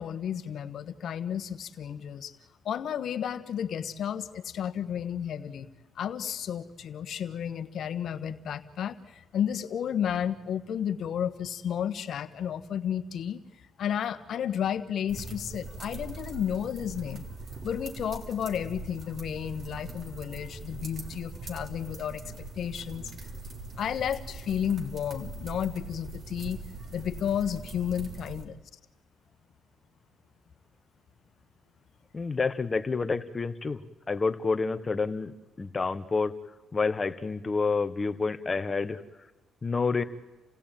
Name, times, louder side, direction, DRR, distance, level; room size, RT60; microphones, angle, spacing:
voice 1, 0.0-2.3 2.6-5.7 5.9-13.4 13.8-17.3 17.6-23.1 23.8-26.6 26.9-28.6, left 9 dB, 65° left, 10 dB, 1.4 m, -32 dB
sound 1, 15.1-28.4, right 3 dB, 50° right, 3.4 m, -42 dB
voice 2, 32.1-33.8 34.1-36.4 36.7-39.0 39.6-40.0, left 4 dB, 30° left, 11 dB, 1.4 m, -28 dB
29.0 x 16.5 x 9.1 m, 1.1 s
cardioid pair, 90°, 0 cm